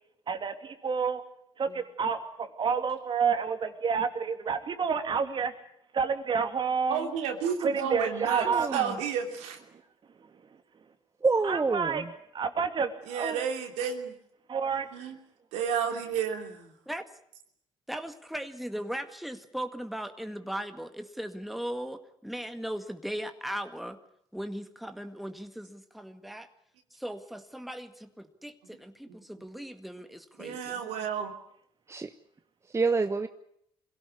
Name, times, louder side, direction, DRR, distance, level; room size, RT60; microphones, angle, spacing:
voice 1, 0.3-1.2 1.6-5.5 5.9-7.1 7.6-8.7 9.7-9.8 10.1-10.6 11.4-12.0 12.3-13.4 14.5-14.9, right 6 dB, 45° right, 7 dB, 3.0 m, -29 dB
voice 2, 6.9-9.6 13.1-14.1 14.9-15.2 15.5-16.7 29.1-29.2 30.4-31.3, right 7 dB, 85° right, 4 dB, 3.1 m, -31 dB
voice 3, 8.4-9.0 11.2-12.1 31.9-32.1 32.7-33.3, right 4 dB, 25° right, 9 dB, 1.1 m, -27 dB
voice 4, 17.9-24.0 24.3-26.5 26.9-30.8, equal, ahead, 7 dB, 1.9 m, -38 dB
23.0 x 17.0 x 9.9 m, 0.72 s
supercardioid pair, 75°, 11 cm